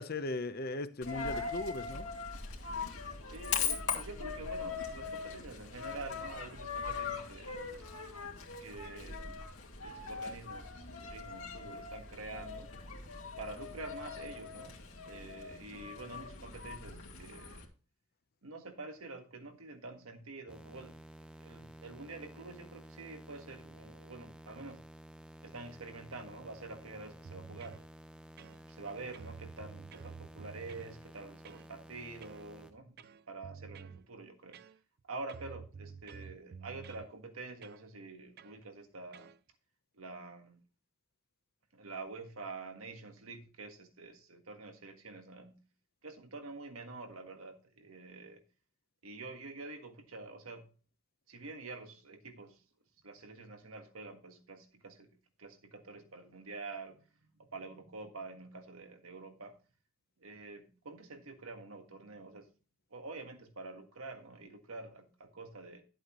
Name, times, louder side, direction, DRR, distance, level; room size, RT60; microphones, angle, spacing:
voice 1, 0.0-2.1, left 2 dB, 45° left, 0.8 m, -38 dB
Coin (dropping), 1.0-17.6, left 5 dB, 85° left, 2.2 m, -41 dB
voice 2, 3.2-7.6 8.6-9.4 9.8-10.7 11.0-12.7 13.4-17.7 18.4-21.0 21.4-24.8 25.4-27.8 28.4-34.6 35.1-39.3 39.9-40.6 41.7-45.6 46.0-48.4 49.0-50.7 51.3-52.6 53.0-57.0 57.4-59.6 60.2-62.5 62.9-65.8, right 3 dB, 85° right, 1.6 m, -47 dB
sound 1, 20.5-32.7, right 1 dB, 5° right, 0.6 m, -53 dB
sound 2, 27.2-27.8 28.4-28.9 29.1-30.9 31.5-31.7 32.2-32.5 33.0-34.0 34.5-35.0 35.3-37.1 37.6-37.8 38.4-38.6 39.1-39.4, right 6 dB, 45° right, 0.4 m, -50 dB
11.5 x 7.8 x 3.1 m
head